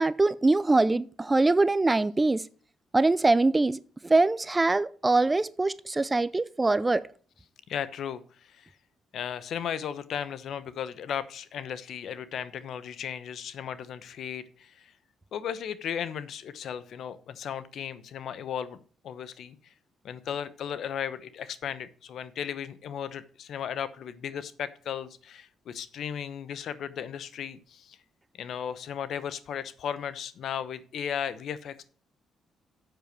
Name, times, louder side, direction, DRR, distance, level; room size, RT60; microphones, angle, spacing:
voice 1, 0.0-2.4 2.9-7.1, right 2 dB, 20° right, 0.5 m, -23 dB
voice 2, 7.7-8.7 9.1-14.9 15.3-18.8 19.0-19.6 20.0-28.0 28.4-31.8, left 8 dB, 70° left, 0.9 m, -35 dB
7.9 x 6.8 x 6.0 m
cardioid pair, 90°, 0 cm